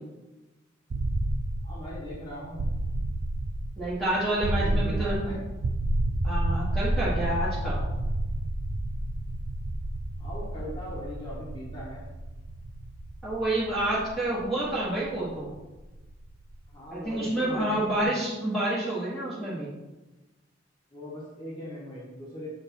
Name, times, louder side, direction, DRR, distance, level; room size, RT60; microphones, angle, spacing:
sound 1, 0.9-16.7, right 1 dB, 80° right, 0.5 m, -31 dB
voice 1, 1.6-2.6 4.5-5.4 10.2-12.0 16.7-18.1 20.9-22.5, left 1 dB, 25° left, -7 dB, 1.2 m, -40 dB
voice 2, 3.8-5.2 6.2-7.8 13.2-15.5 16.9-19.7, right 1 dB, ahead, -9 dB, 1.1 m, -28 dB
7.0 x 3.4 x 4.3 m, 1.1 s
head